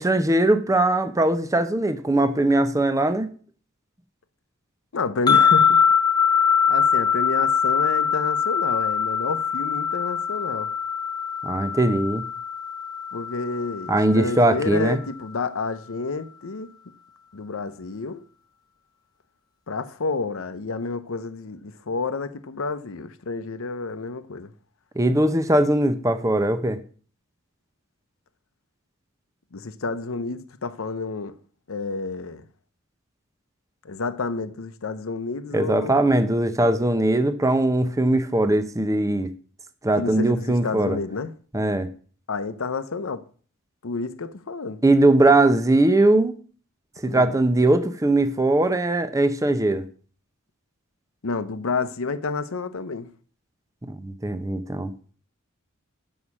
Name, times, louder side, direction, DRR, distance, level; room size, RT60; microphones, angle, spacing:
voice 1, 0.0-3.3 11.4-12.2 13.9-15.0 25.0-26.8 35.5-39.3 39.8-41.0 41.5-41.9 44.8-46.3 47.0-49.8 53.9-54.9, right 2 dB, 15° right, 0.7 m, -20 dB
voice 2, 4.9-5.8 6.4-10.7 13.1-16.7 17.3-18.2 19.7-24.5 29.5-31.4 31.7-32.4 33.8-36.2 40.0-41.3 42.3-43.2 43.8-44.8 47.1-47.3 51.2-53.1, left 4 dB, 75° left, 0.7 m, -30 dB
sound 1, 5.3-14.5, left 7 dB, 20° left, 0.7 m, -22 dB
6.5 x 5.5 x 7.1 m
head